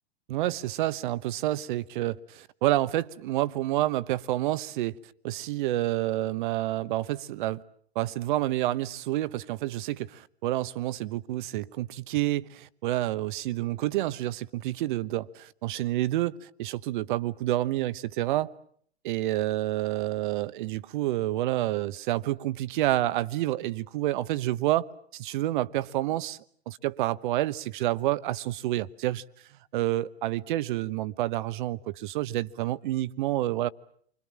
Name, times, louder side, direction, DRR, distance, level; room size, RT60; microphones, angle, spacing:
voice 1, 0.3-5.0 5.2-7.6 7.9-18.5 19.0-26.4 26.7-29.2 29.7-33.7, right 15 dB, 45° right, 1.1 m, -29 dB
30.0 x 25.0 x 7.4 m
figure-of-eight pair, 105°, 34 cm